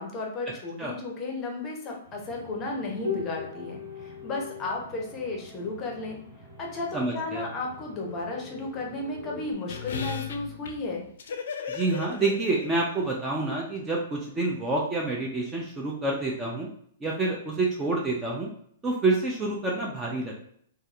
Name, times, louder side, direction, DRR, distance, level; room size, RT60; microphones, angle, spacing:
voice 1, 0.0-6.2 6.6-11.0, left 3 dB, 25° left, 0 dB, 0.6 m, -34 dB
sound 1, 2.0-9.5, left 5 dB, 50° right, 1.4 m, -41 dB
voice 2, 6.9-7.5 11.7-16.7 17.0-18.5 18.8-20.4, right 2 dB, 15° right, -1 dB, 0.4 m, -28 dB
sound 2, 9.7-13.2 13.5-13.6, left 6 dB, 75° left, 0.4 m, -36 dB
2.7 x 2.3 x 2.4 m, 0.65 s
hypercardioid pair, 150°, 0 cm